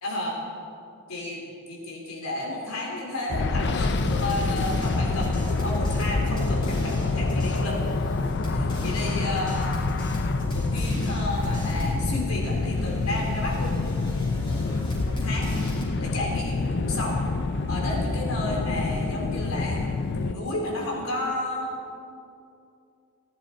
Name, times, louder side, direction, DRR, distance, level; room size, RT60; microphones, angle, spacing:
voice 1, 0.0-0.4 1.1-1.4 1.7-7.8 8.5-9.8 10.5-13.8 15.0-15.5 16.0-17.2 17.7-19.8 20.1-21.7, left 1 dB, 80° left, -2 dB, 3.4 m, -32 dB
sound 1, 3.3-20.3, left 3 dB, 55° left, 0.5 m, -27 dB
sound 2, 3.9-12.1 12.4-15.8, equal, 25° left, 3.3 m, -35 dB
18.0 x 10.5 x 4.4 m, 2.6 s
head